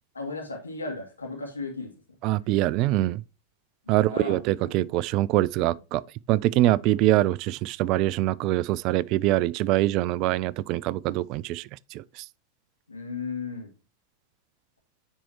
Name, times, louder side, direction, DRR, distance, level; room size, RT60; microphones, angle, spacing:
voice 1, 0.1-1.9 3.8-4.9 12.9-13.7, left 3 dB, 80° left, 2.6 m, -35 dB
voice 2, 2.2-3.2 3.9-6.0 6.3-12.2, right 15 dB, 40° right, 0.3 m, -24 dB
10.0 x 4.5 x 2.9 m
figure-of-eight pair, 90°, 0 cm